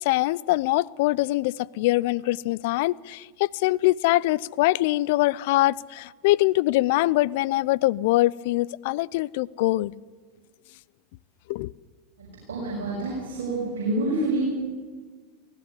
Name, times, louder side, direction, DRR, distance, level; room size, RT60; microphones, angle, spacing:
voice 1, 0.0-9.9 11.5-11.7, left 18 dB, 65° left, 22 dB, 0.5 m, -23 dB
voice 2, 12.2-14.4, right 2 dB, 80° right, -4 dB, 6.5 m, -28 dB
18.5 x 16.0 x 9.9 m, 1.4 s
hypercardioid pair, 90°, 0 cm